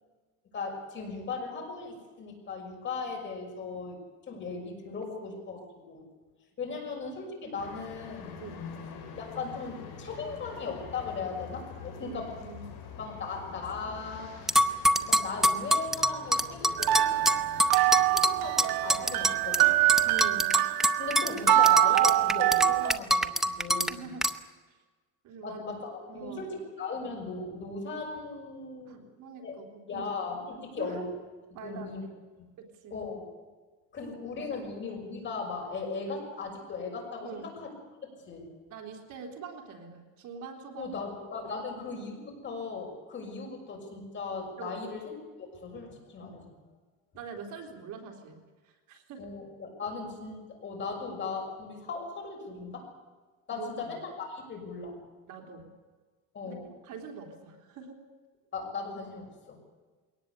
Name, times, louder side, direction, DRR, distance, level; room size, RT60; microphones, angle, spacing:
voice 1, 0.5-4.0 4.3-5.6 5.9-6.1 6.6-8.3 9.1-12.3 13.0-14.4 15.0-17.2 17.8-19.7 21.0-24.1 25.4-29.0 29.4-29.6 29.9-31.1 31.5-32.0 32.4-32.5 32.9-33.2 33.9-37.7 38.1-38.5 40.8-46.6 49.2-52.9 53.5-55.0 56.3-56.7 58.5-59.6, left 4 dB, 35° left, 1 dB, 6.2 m, -38 dB
sound 1, 7.6-20.4, left 6 dB, 75° left, 6.0 m, -46 dB
voice 2, 12.0-12.7 20.1-20.6 23.9-24.2 24.7-24.8 25.2-25.6 26.1-26.5 28.9-30.1 30.8-31.0 31.5-31.9 32.6-33.0 37.2-37.5 38.7-40.9 44.6-44.8 46.2-46.3 47.1-49.3 53.5-54.0 55.3-55.7 56.4-56.6 56.8-58.0, right 6 dB, 60° right, 3 dB, 3.6 m, -44 dB
sound 2, 14.5-19.6 19.9-23.9 24.2-24.3, equal, ahead, 0.7 m, -25 dB
sound 3, 16.8-23.0, right 16 dB, 85° right, 0.9 m, -24 dB
22.0 x 18.5 x 8.4 m, 1.4 s
cardioid pair, 155°, 34 cm